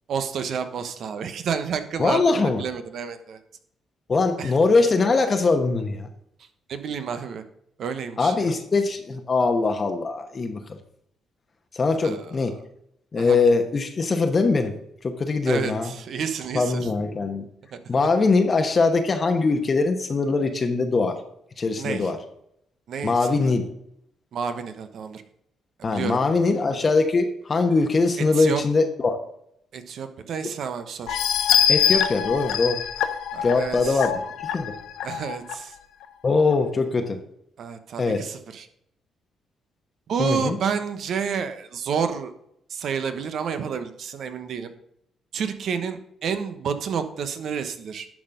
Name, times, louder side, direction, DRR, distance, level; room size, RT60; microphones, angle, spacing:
voice 1, 0.1-3.4 4.4-4.5 6.7-7.4 7.8-8.5 12.0-12.5 13.2-13.4 15.5-16.9 17.7-17.8 21.8-22.1 22.9-23.5 24.3-25.2 25.8-26.2 28.3-28.6 29.7-31.2 33.3-34.0 35.0-35.7 37.6-38.7 40.1-42.3 42.7-44.7 45.3-48.1, right 6 dB, 65° right, 9 dB, 1.0 m, -30 dB
voice 2, 2.0-2.6 4.1-6.1 8.2-10.6 11.7-12.6 13.1-14.7 15.0-15.9 16.5-17.4 17.9-21.2 21.6-22.2 23.0-23.6 25.8-29.2 31.7-32.8 33.4-34.1 34.4-34.7 36.2-37.2 38.0-38.2 40.2-40.6, left 3 dB, 35° left, 5 dB, 1.0 m, -22 dB
sound 1, 31.1-35.5 36.0-36.1 36.5-36.6, left 9 dB, 85° left, 0.7 m, -24 dB
10.5 x 4.3 x 5.2 m, 0.74 s
cardioid pair, 90°, 0 cm